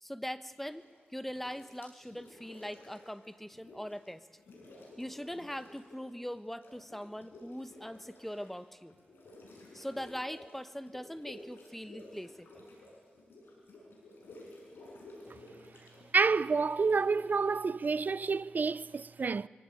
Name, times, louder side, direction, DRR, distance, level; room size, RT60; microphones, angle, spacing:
voice 1, 0.0-4.3 5.0-8.9 9.7-12.5, equal, 5° left, 1.1 m, -41 dB
sound 1, 0.6-1.0 1.3-4.1 4.3-6.1 6.3-17.9, left 1 dB, 80° left, 6.5 m, -53 dB
voice 2, 16.1-19.5, right 4 dB, 55° right, 0.6 m, -29 dB
24.0 x 17.0 x 8.6 m
cardioid pair, 45°, 4 cm